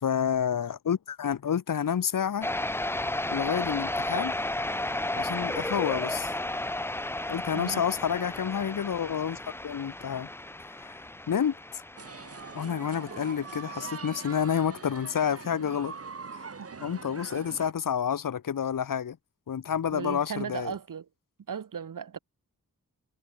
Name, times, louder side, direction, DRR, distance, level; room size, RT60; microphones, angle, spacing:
voice 1, 0.0-2.5 3.3-4.3 5.1-6.3 7.3-9.4 9.6-10.3 10.8-10.9 11.3-11.8 12.5-15.9 16.3-16.5 16.8-19.2 19.5-20.7, left 8 dB, 70° left, 0.8 m, -29 dB
sound 1, 2.4-13.9, left 1 dB, 5° left, 0.4 m, -34 dB
sound 2, 12.0-17.7, right 4 dB, 45° right, 1.2 m, -42 dB
voice 2, 19.9-21.1 21.5-22.2, right 7 dB, 65° right, 0.9 m, -36 dB
wide cardioid pair, 75°, 34 cm